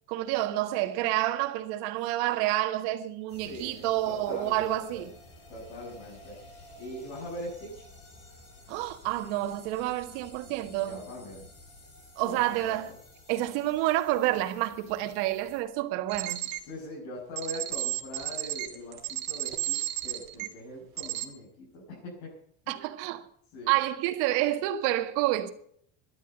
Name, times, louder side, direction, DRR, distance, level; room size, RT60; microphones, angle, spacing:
voice 1, 0.1-5.1 8.7-11.0 12.2-12.9 13.3-16.4 22.7-23.3 23.7-25.5, right 15 dB, 70° right, 1.8 m, -29 dB
sound 1, 3.3-15.6, left 1 dB, 30° left, 6.1 m, -53 dB
voice 2, 3.4-5.1 5.5-6.4 6.8-7.9 10.4-11.5 12.2-12.8 16.6-22.3 22.7-22.9 23.5-23.8, left 1 dB, 65° left, 7.2 m, -42 dB
sound 2, 16.1-16.6 17.4-20.5 21.0-21.3, right 17 dB, 55° right, 2.5 m, -33 dB
13.0 x 12.0 x 8.0 m
cardioid pair, 165°, 43 cm